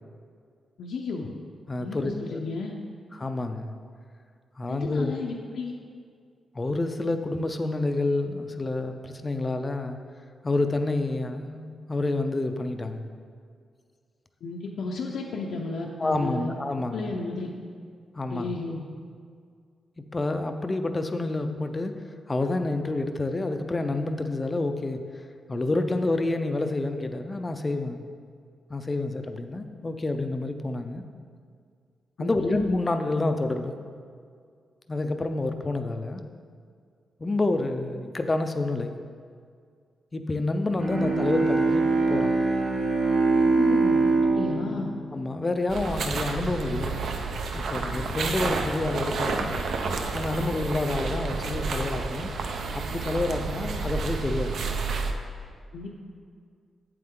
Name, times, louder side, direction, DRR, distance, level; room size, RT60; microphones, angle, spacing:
voice 1, 0.8-1.3 1.8-2.7 4.7-5.7 14.4-16.5 16.9-17.5 18.3-18.8 32.2-32.6 43.5-44.9 55.7-55.9, left 3 dB, 75° left, -1 dB, 0.7 m, -33 dB
voice 2, 1.7-2.4 3.1-3.7 4.6-5.2 6.5-10.0 10.4-13.0 16.0-17.1 18.2-18.6 20.1-22.0 22.3-25.0 25.5-28.0 28.7-31.0 32.2-33.9 34.9-36.2 37.2-39.0 40.1-42.4 45.1-47.0 47.5-49.5 50.1-52.3 52.7-54.6, left 2 dB, 20° left, 7 dB, 0.4 m, -28 dB
Bowed string instrument, 40.8-46.0, right 3 dB, 45° right, 1.3 m, -24 dB
sound 1, 45.7-55.1, right 4 dB, 65° right, 0.6 m, -30 dB
8.5 x 7.7 x 3.7 m, 2.1 s
wide cardioid pair, 180°, 0 cm